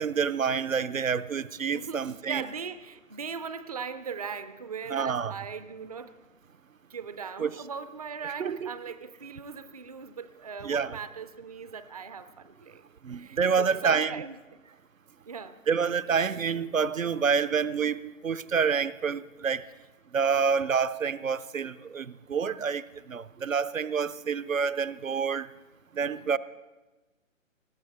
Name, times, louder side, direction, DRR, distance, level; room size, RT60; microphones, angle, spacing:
voice 1, 0.0-2.4 4.9-5.3 7.4-7.5 8.4-8.7 10.6-10.9 13.0-14.1 15.7-19.6 20.1-22.8 23.1-25.5 26.0-26.4, right 6 dB, 75° right, 14 dB, 0.7 m, -27 dB
voice 2, 1.7-6.2 6.9-14.7 15.3-15.6 26.2-26.4, right 6 dB, 30° right, 12 dB, 0.4 m, -39 dB
20.0 x 15.0 x 4.0 m, 1.2 s
figure-of-eight pair, 135°, 40 cm